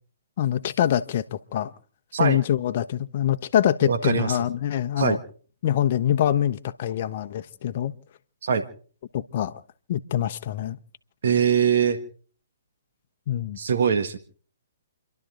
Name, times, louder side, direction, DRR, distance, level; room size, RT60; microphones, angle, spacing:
voice 1, 0.4-1.7 2.2-5.2 5.6-7.9 9.1-9.6 9.9-10.8 13.3-13.6, left 11 dB, 45° left, 0.9 m, -24 dB
voice 2, 3.8-4.4 5.0-5.2 8.4-8.7 11.2-12.0 13.6-14.2, right 7 dB, 60° right, 1.7 m, -22 dB
29.5 x 12.0 x 3.9 m
hypercardioid pair, 135°, 0 cm